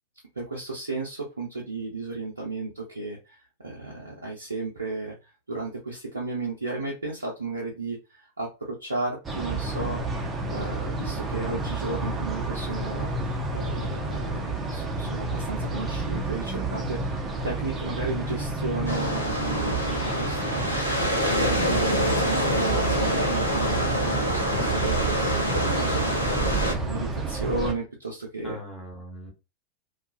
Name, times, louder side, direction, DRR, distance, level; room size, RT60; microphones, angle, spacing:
voice 1, 0.4-10.0 10.5-13.1 13.5-25.0 25.5-28.6, right 3 dB, 75° right, -3 dB, 0.6 m, -34 dB
sound 1, 9.2-27.7, right 3 dB, 20° right, 0.6 m, -30 dB
sound 2, 18.9-26.7, left 1 dB, 85° left, 0.6 m, -26 dB
voice 2, 24.2-24.7 28.4-29.3, equal, 15° left, -1 dB, 1.1 m, -39 dB
2.4 x 2.2 x 2.5 m, 0.27 s
figure-of-eight pair, 90°, 0 cm